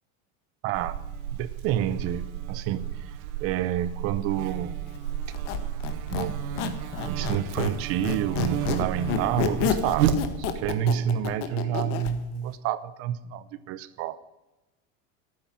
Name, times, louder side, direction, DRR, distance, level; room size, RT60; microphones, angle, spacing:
voice 1, 0.6-0.9 1.3-3.1 3.4-4.8 6.1-6.8 7.1-14.2, right 10 dB, 35° right, 16 dB, 0.7 m, -29 dB
Buzz, 0.7-10.7, right 9 dB, 80° right, 1.5 m, -32 dB
Squeak, 5.3-7.8 8.0-12.1, left 8 dB, 55° left, 1.7 m, -30 dB
11.5 x 9.7 x 9.7 m, 1.0 s
supercardioid pair, 165°, 42 cm